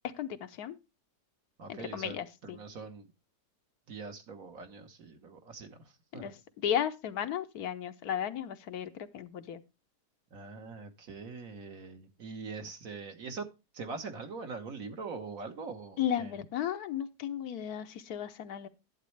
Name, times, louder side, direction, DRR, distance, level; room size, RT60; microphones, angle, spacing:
voice 1, 0.2-0.8 1.7-2.6 6.1-9.6 16.0-18.7, left 9 dB, 70° left, 10 dB, 1.2 m, -35 dB
voice 2, 1.6-3.1 3.9-5.8 6.1-6.3 10.3-13.4 13.7-16.4, right 4 dB, 60° right, 5 dB, 1.7 m, -43 dB
11.5 x 8.1 x 3.2 m, 0.27 s
omnidirectional pair, 1.7 m